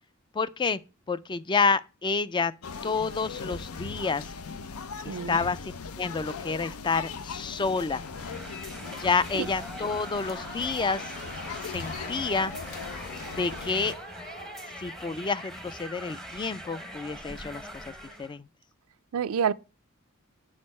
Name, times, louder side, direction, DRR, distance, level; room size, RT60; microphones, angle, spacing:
voice 1, 0.3-0.8 1.1-2.5 2.8-4.3 5.0-8.0 9.0-11.1 11.7-12.5 13.4-13.9 14.8-17.8 18.2-18.5, left 4 dB, 20° left, 0.3 m, -29 dB
sound 1, 2.6-14.0, left 5 dB, 85° left, 0.6 m, -39 dB
voice 2, 5.1-5.4 9.3-9.5 19.1-19.5, right 7 dB, 80° right, 0.4 m, -27 dB
sound 2, 8.0-18.4, right 1 dB, ahead, 0.7 m, -42 dB
sound 3, 9.9-15.7, left 1 dB, 50° left, 2.7 m, -45 dB
6.5 x 5.2 x 4.2 m
head